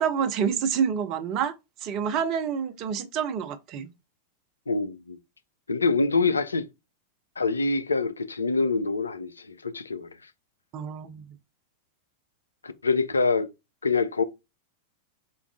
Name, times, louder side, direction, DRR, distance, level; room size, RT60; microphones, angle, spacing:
voice 1, 0.0-1.5 1.8-3.9 10.7-11.2, right 7 dB, 40° right, 0.6 m, -27 dB
voice 2, 4.7-5.2 5.7-6.7 7.4-10.1 12.6-13.5 13.8-14.2, left 4 dB, 75° left, 0.3 m, -25 dB
3.9 x 2.4 x 3.4 m
figure-of-eight pair, 90°, 0 cm